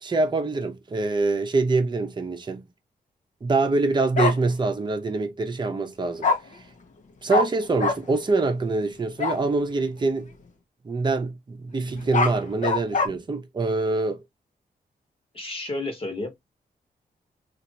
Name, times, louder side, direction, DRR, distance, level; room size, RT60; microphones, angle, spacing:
voice 1, 0.0-2.6 3.4-6.3 6.5-6.6 7.2-10.3 10.8-14.2, right 3 dB, 30° right, 0.8 m, -25 dB
Bark, 4.2-4.3 6.2-6.4 7.3-7.5 7.8-8.0 9.2-9.4 11.9-13.1, left 3 dB, 50° left, 0.9 m, -22 dB
voice 2, 15.3-16.3, left 2 dB, 35° left, 1.4 m, -31 dB
2.9 x 2.5 x 3.9 m
wide cardioid pair, 125°, 16 cm